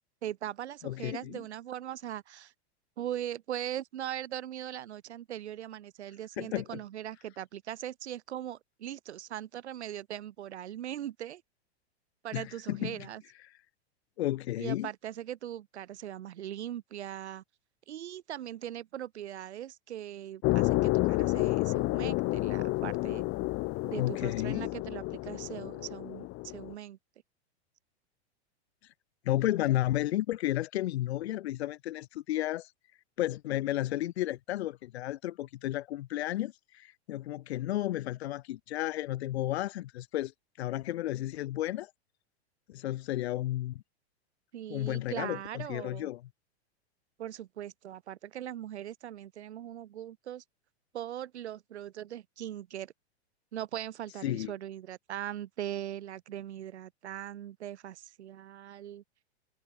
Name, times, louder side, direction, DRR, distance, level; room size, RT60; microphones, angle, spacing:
voice 1, 0.2-2.5 3.0-11.4 12.2-13.2 14.6-17.4 17.9-23.2 23.8-27.0 44.5-46.1 47.2-50.4 50.9-52.9 53.5-59.0, right 11 dB, 80° right, 6.4 m, -40 dB
voice 2, 0.8-1.4 6.4-6.8 12.3-13.1 14.2-14.9 24.0-24.7 29.3-32.7 33.2-40.3 40.6-41.9 42.7-43.8 44.7-46.2 54.2-54.5, left 14 dB, 70° left, 3.7 m, -32 dB
sound 1, 20.4-26.7, left 21 dB, 40° left, 3.7 m, -30 dB
hypercardioid pair, 130°, 33 cm